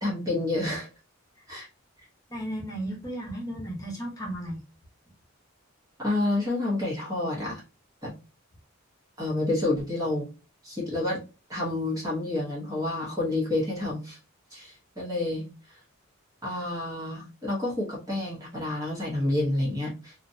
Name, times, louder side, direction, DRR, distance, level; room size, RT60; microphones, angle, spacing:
voice 1, 0.0-0.9 1.5-1.7 6.0-7.6 8.0-8.1 9.2-10.3 10.6-11.2 11.5-14.2 14.5-15.8 16.4-20.1, left 2 dB, 15° right, -5 dB, 0.7 m, -29 dB
voice 2, 2.3-4.6, right 1 dB, 15° left, -2 dB, 0.8 m, -34 dB
2.6 x 2.1 x 2.5 m, 0.31 s
head